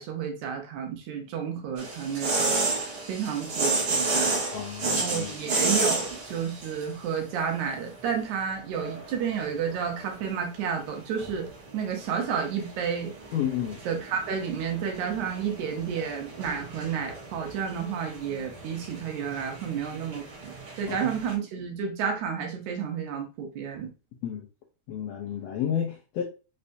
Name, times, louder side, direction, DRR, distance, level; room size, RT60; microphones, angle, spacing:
voice 1, 0.0-4.4 4.8-11.5 11.7-13.1 13.9-23.9, right 7 dB, 70° right, 2.1 m, -31 dB
sound 1, 1.8-21.3, right 3 dB, 50° right, 1.3 m, -32 dB
voice 2, 4.5-5.3 13.3-13.8 20.9-21.1 24.2-24.5 24.9-26.2, left 9 dB, 75° left, 1.5 m, -31 dB
5.4 x 3.3 x 2.6 m
omnidirectional pair, 3.7 m